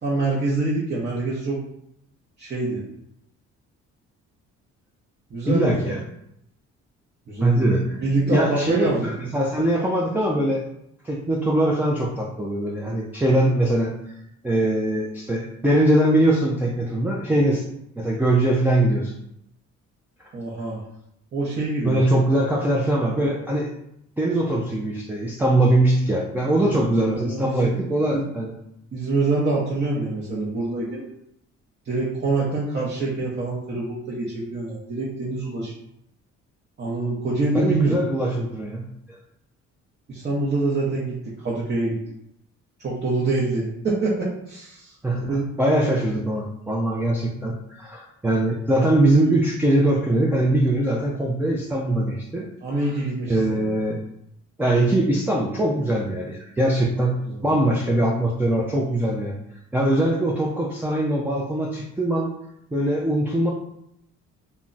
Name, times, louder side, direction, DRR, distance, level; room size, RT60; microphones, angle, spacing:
voice 1, 0.0-1.6 2.4-2.8 5.3-6.0 7.3-7.7 8.0-9.1 20.3-20.8 21.3-22.0 26.6-27.7 28.1-28.2 28.9-31.0 31.8-35.7 36.8-38.0 40.1-42.0 42.8-45.4 52.6-53.7 57.3-57.5, right 2 dB, 35° right, -6 dB, 0.8 m, -25 dB
voice 2, 5.5-6.0 7.4-8.0 8.3-10.6 11.0-13.9 14.4-17.6 18.0-19.1 21.8-23.7 24.2-28.5 37.5-39.2 45.0-52.5 53.3-54.0 54.6-59.4 59.7-62.3 62.7-63.5, right 1 dB, 5° right, -2 dB, 0.4 m, -22 dB
2.2 x 2.1 x 3.8 m, 0.76 s
cardioid pair, 90°, 30 cm